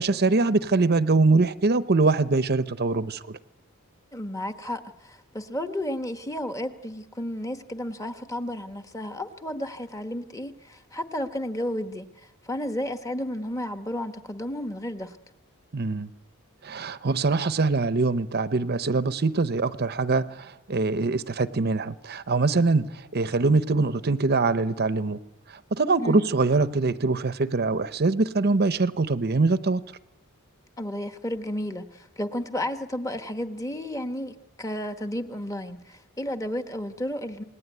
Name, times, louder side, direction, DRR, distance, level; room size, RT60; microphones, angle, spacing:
voice 1, 0.0-3.4 15.7-16.1 16.6-25.2 25.5-29.8, right 3 dB, 50° right, 13 dB, 0.8 m, -23 dB
voice 2, 4.1-12.1 12.4-15.2 26.0-26.3 30.8-37.4, left 1 dB, 15° left, 8 dB, 1.2 m, -32 dB
27.5 x 19.5 x 9.4 m, 1.1 s
head